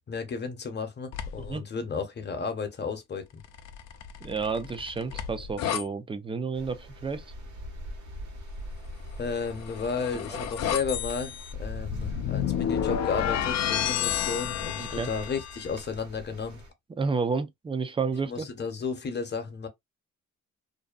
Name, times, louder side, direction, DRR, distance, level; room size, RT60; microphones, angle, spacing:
voice 1, 0.0-3.4 9.2-16.6 18.3-19.7, left 5 dB, 35° left, 0.8 m, -33 dB
sound 1, 1.1-1.6 3.4-5.8 9.3-15.7, left 9 dB, 60° left, 0.5 m, -31 dB
voice 2, 4.2-7.2 10.3-10.4 14.8-15.1 17.0-18.5, right 4 dB, 20° right, 0.4 m, -31 dB
sound 2, 6.5-16.7, equal, 70° right, 1.1 m, -42 dB
2.6 x 2.2 x 2.3 m
cardioid pair, 90°, 30 cm